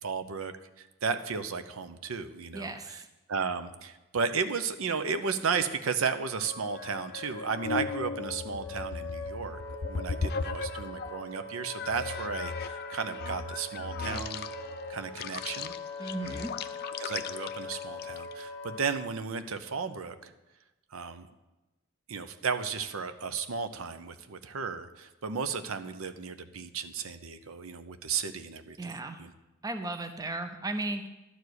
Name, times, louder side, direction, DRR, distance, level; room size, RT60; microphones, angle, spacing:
voice 1, 0.0-0.5 1.0-3.0 3.3-9.6 9.9-14.5 14.9-15.7 17.0-20.3 20.9-21.3 22.1-28.9 29.2-29.3, right 5 dB, 70° right, 10 dB, 0.7 m, -34 dB
voice 2, 2.5-3.1 16.0-16.5 28.8-29.2 29.6-31.1, right 2 dB, 15° right, 8 dB, 0.5 m, -35 dB
sound 1, 6.3-11.2 11.8-18.4, left 4 dB, 45° left, 0.5 m, -37 dB
Wind instrument woodwind instrument, 8.2-19.0, left 2 dB, 5° left, 1.7 m, -42 dB
12.0 x 4.8 x 8.0 m, 1.0 s
head